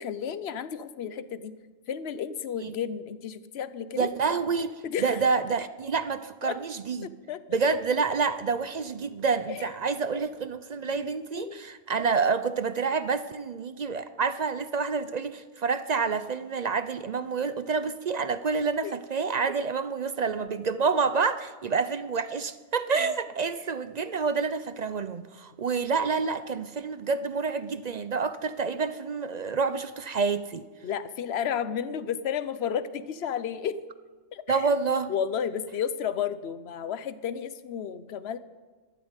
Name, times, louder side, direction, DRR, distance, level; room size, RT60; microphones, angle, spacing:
voice 1, 0.0-1.5 1.9-4.1 4.8-5.2 6.4-6.5 7.0-7.4 9.5-9.7 10.9-11.1 11.3-11.6 18.8-18.9 22.9-23.0 30.8-33.8 34.3-34.7 35.1-38.4, left 8 dB, 60° left, 14 dB, 1.0 m, -32 dB
voice 2, 4.0-4.7 5.0-7.1 7.5-30.6 34.5-35.1, right 5 dB, 50° right, 12 dB, 0.5 m, -28 dB
13.5 x 12.0 x 8.1 m, 1.4 s
omnidirectional pair, 1.3 m